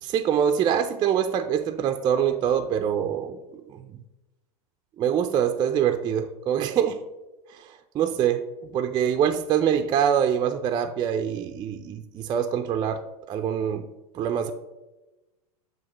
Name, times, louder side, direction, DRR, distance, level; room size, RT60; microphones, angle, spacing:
voice 1, 0.0-3.4 3.7-4.0 5.0-7.0 7.5-8.4 8.7-13.0 13.3-13.9 14.1-14.5, right 9 dB, 20° right, 7 dB, 0.3 m, -24 dB
7.0 x 5.8 x 3.0 m, 1.0 s
hypercardioid pair, 105°, 19 cm